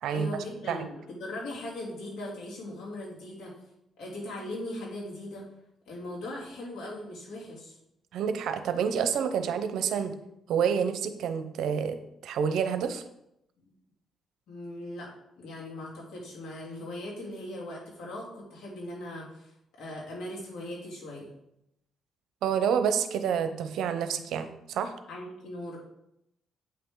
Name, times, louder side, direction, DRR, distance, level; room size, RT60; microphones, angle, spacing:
voice 1, 0.1-3.5 4.0-5.5 5.9-7.8 13.6-13.7 14.5-15.1 15.4-19.5 19.8-21.3 25.1-25.8, left 1 dB, 75° left, -4 dB, 3.2 m, -39 dB
voice 2, 8.1-10.1 10.5-12.0 12.2-13.0 22.4-24.9, right 7 dB, 80° right, 9 dB, 0.7 m, -28 dB
8.5 x 5.8 x 3.8 m, 0.81 s
cardioid pair, 90°, 0 cm